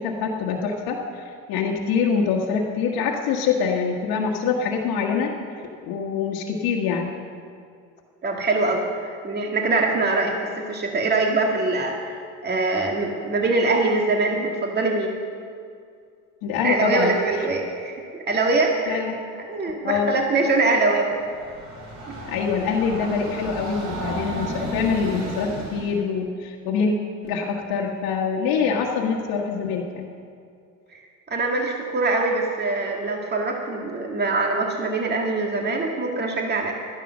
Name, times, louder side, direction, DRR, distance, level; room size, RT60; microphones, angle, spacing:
voice 1, 0.0-5.3 5.9-7.1 16.4-17.1 18.9-19.2 19.8-20.1 22.3-26.9 27.2-30.1, left 6 dB, 75° left, -2 dB, 1.5 m, -24 dB
voice 2, 8.2-15.2 16.6-19.0 19.5-21.2 22.1-22.2 30.9-31.0 31.3-36.7, right 3 dB, 30° right, 1 dB, 1.9 m, -23 dB
Train, 21.1-26.0, right 1 dB, 50° right, 3.9 m, -33 dB
12.5 x 10.5 x 6.3 m, 2.3 s
supercardioid pair, 90°, 35 cm